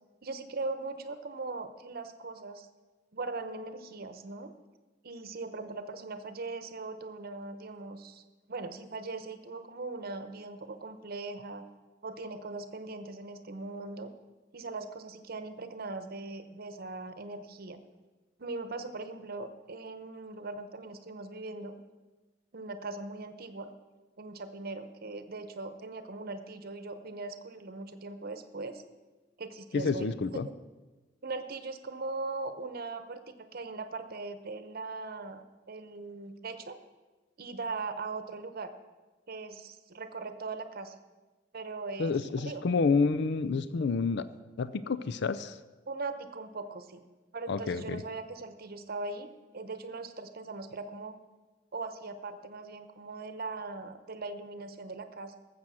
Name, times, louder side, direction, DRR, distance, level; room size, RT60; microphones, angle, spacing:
voice 1, 0.2-2.7 3.1-4.5 5.0-8.2 8.5-11.6 12.0-14.1 14.5-17.8 18.4-21.8 22.5-23.7 24.2-28.8 29.4-30.5 31.2-36.8 37.4-38.7 39.3-41.0 41.5-42.6 45.9-47.0 47.3-51.2 51.7-55.4, right 3 dB, 55° right, 10 dB, 0.9 m, -40 dB
voice 2, 29.7-30.5 42.0-44.2 44.6-45.6 47.5-48.0, left 4 dB, 65° left, 14 dB, 0.5 m, -29 dB
13.0 x 7.5 x 6.2 m, 1.2 s
head